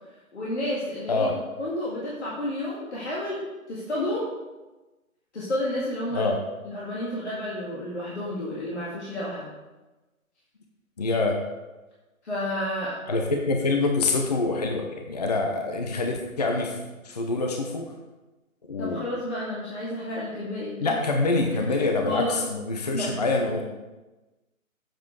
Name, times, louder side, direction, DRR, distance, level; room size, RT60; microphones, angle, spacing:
voice 1, 0.3-1.3 1.6-4.3 5.3-6.3 6.6-9.5 12.2-13.0 18.8-20.9 21.5-21.6 22.1-22.4 22.9-23.1, left 1 dB, 50° left, -6 dB, 2.1 m, -31 dB
voice 2, 11.0-11.4 13.1-16.8 17.0-17.9 18.6-19.0 20.8-23.6, left 3 dB, 30° left, 2 dB, 0.7 m, -25 dB
7.6 x 7.3 x 4.6 m, 1.1 s
figure-of-eight pair, 145°, 42 cm